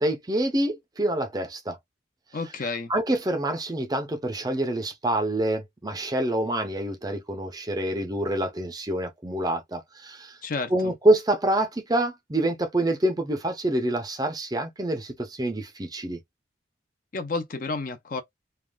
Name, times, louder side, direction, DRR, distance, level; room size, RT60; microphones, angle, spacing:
voice 1, 0.0-1.8 2.9-10.3 10.7-16.2, right 1 dB, 20° right, 0.5 m, -26 dB
voice 2, 2.3-2.9 10.4-10.9 17.1-18.2, left 3 dB, 45° left, 0.5 m, -31 dB
3.3 x 2.3 x 2.2 m
head